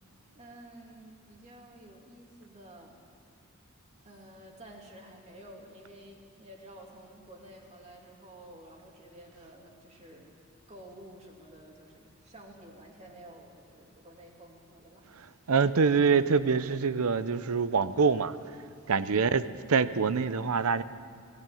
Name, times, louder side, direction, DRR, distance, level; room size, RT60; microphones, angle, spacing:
voice 1, 0.3-3.0 4.0-10.3 10.7-15.1 18.9-19.4, right 1 dB, 30° right, 2.8 m, -51 dB
voice 2, 15.5-18.4 18.9-20.8, right 5 dB, 90° right, 0.7 m, -25 dB
20.0 x 15.5 x 9.2 m
head